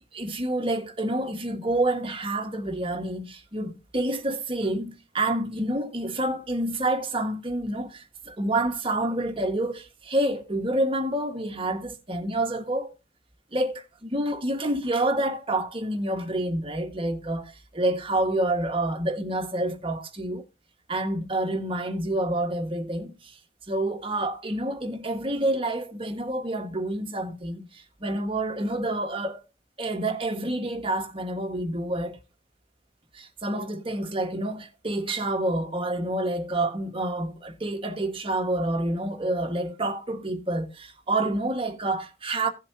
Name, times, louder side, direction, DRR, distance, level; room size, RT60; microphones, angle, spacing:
voice 1, 0.1-12.9 13.5-20.4 20.9-23.3 23.7-29.4 29.8-32.2 33.1-42.5, right 1 dB, 30° right, 1.5 m, -28 dB
16.5 x 7.4 x 2.8 m
head